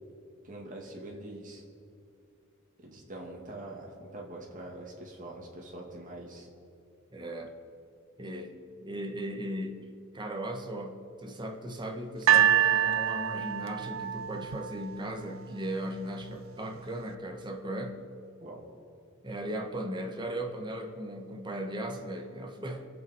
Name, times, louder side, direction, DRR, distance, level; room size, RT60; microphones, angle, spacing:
voice 1, 0.4-1.6 2.8-6.5 18.4-18.6, right 1 dB, 40° right, -1 dB, 2.5 m, -44 dB
voice 2, 7.1-7.6 8.2-8.5 8.8-9.9 10.1-18.0 19.2-22.9, right 1 dB, 20° right, 3 dB, 1.3 m, -37 dB
sound 1, 12.3-15.4 16.2-16.3, right 10 dB, 75° right, 0.6 m, -26 dB
24.5 x 8.2 x 4.6 m, 2.6 s
head